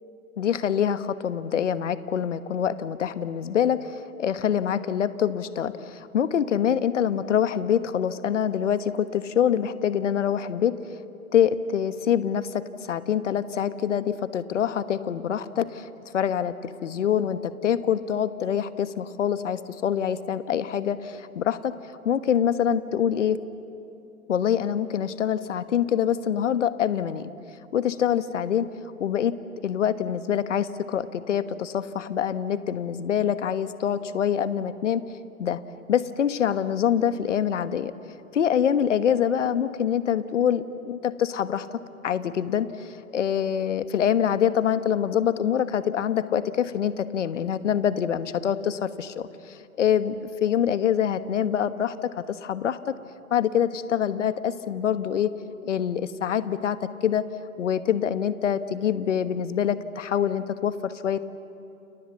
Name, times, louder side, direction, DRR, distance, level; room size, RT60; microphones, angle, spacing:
voice 1, 0.4-10.8 11.3-15.9 16.1-21.8 22.0-23.4 24.3-27.3 27.7-28.7 29.0-29.4 29.6-35.0 35.4-35.6 35.9-37.9 38.3-41.8 42.0-52.9 53.3-55.3 55.6-57.2 57.6-61.2, left 9 dB, 55° left, 13 dB, 1.4 m, -25 dB
30.0 x 27.5 x 7.2 m, 2.8 s
figure-of-eight pair, 125°, 43 cm